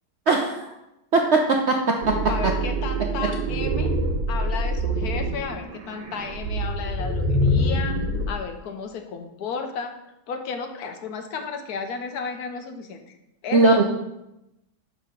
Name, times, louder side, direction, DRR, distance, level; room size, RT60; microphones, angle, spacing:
voice 1, 0.3-0.7 1.1-2.2 2.4-2.5 13.5-13.8, right 3 dB, 60° right, 1 dB, 0.7 m, -19 dB
sound 1, 2.0-8.3, right 1 dB, 85° right, 1.5 m, -25 dB
voice 2, 2.3-3.9 4.3-9.9 10.3-13.1 13.4-13.8, left 5 dB, 65° left, 6 dB, 1.2 m, -33 dB
6.1 x 5.5 x 5.0 m, 0.90 s
omnidirectional pair, 1.8 m